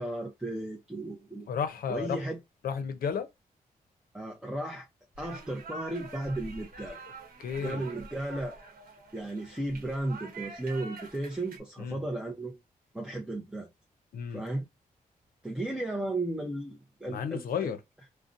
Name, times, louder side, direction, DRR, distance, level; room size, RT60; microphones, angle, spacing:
voice 1, 0.0-1.5 1.9-2.4 4.1-4.9 5.2-7.0 7.6-8.6 9.1-12.6 12.9-13.7 14.3-14.7 15.4-17.7, right 2 dB, 5° right, 0.5 m, -35 dB
voice 2, 1.5-2.2 2.6-3.3 7.4-7.9 11.8-12.0 14.1-14.4 17.1-17.8, left 7 dB, 80° left, 0.5 m, -32 dB
sound 1, 5.2-11.6, right 3 dB, 75° right, 0.9 m, -46 dB
2.6 x 2.1 x 2.4 m
wide cardioid pair, 135°, 15 cm